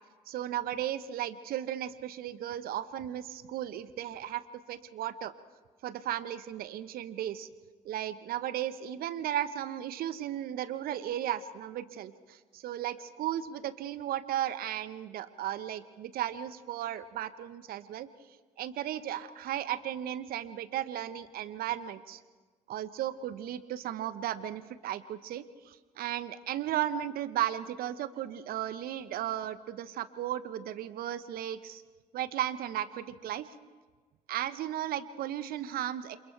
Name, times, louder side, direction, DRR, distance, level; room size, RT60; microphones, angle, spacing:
voice 1, 0.3-4.4 4.7-5.3 5.8-7.5 7.8-18.1 18.6-22.2 22.7-31.8 32.1-33.5 34.3-36.2, right 11 dB, 55° right, 13 dB, 1.1 m, -35 dB
29.0 x 27.0 x 3.4 m, 1.4 s
figure-of-eight pair, 50°, 18 cm